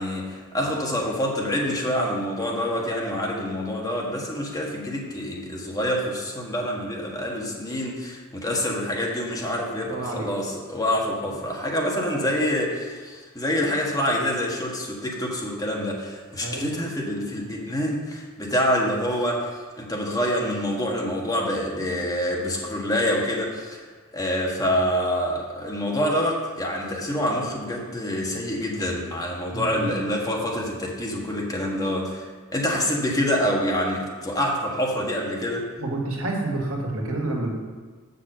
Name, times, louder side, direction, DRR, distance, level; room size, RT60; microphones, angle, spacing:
voice 1, 0.0-23.8 24.1-32.2 32.5-35.7, equal, 15° left, -2 dB, 1.4 m, -26 dB
voice 2, 9.9-10.3 12.2-12.3 16.4-16.8 29.5-29.9 35.8-37.5, right 2 dB, 80° right, -1 dB, 1.8 m, -29 dB
6.8 x 6.1 x 7.5 m, 1.4 s
head